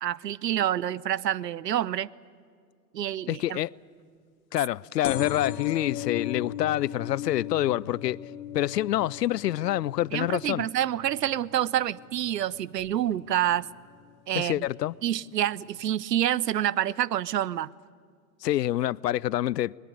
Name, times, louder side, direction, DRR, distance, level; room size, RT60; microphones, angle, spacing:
voice 1, 0.0-2.1 2.9-3.6 10.1-13.7 14.3-14.5 15.0-17.7, right 11 dB, 75° right, 0.7 m, -27 dB
voice 2, 3.3-3.7 4.5-8.2 8.5-10.7 14.3-15.0 18.4-19.8, left 14 dB, 75° left, 0.5 m, -27 dB
sound 1, 5.0-12.3 12.8-13.2 14.1-14.2 14.4-14.5 14.7-14.8, left 11 dB, 55° left, 1.6 m, -37 dB
21.0 x 21.0 x 9.7 m
figure-of-eight pair, 90°, 50 cm